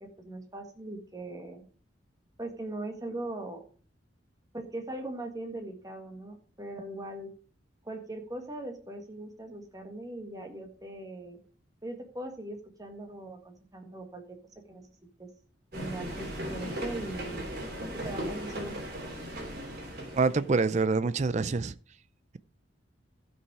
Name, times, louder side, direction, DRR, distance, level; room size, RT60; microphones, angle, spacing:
voice 1, 0.0-1.6 2.4-3.6 4.5-7.3 7.8-11.4 11.8-14.4 14.7-14.8 15.2-15.3 15.7-17.4 18.0-18.8, right 1 dB, 20° right, 1.7 m, -40 dB
sound 1, 15.7-20.6, equal, 50° right, 3.2 m, -37 dB
voice 2, 20.1-21.7, right 4 dB, 35° right, 0.4 m, -26 dB
14.5 x 5.5 x 4.7 m
head